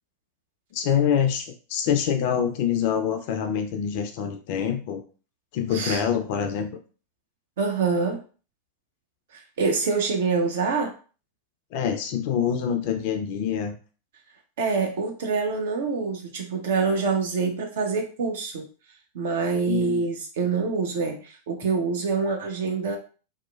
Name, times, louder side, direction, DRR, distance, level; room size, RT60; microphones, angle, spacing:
voice 1, 0.7-5.0 5.5-6.7 11.7-13.8 19.7-20.0, left 8 dB, 50° left, 5 dB, 0.3 m, -25 dB
voice 2, 7.6-8.2 9.3-10.9 14.6-18.6 19.1-23.0, right 4 dB, 55° right, 3 dB, 0.6 m, -26 dB
2.8 x 2.1 x 2.2 m, 0.38 s
figure-of-eight pair, 90°, 0 cm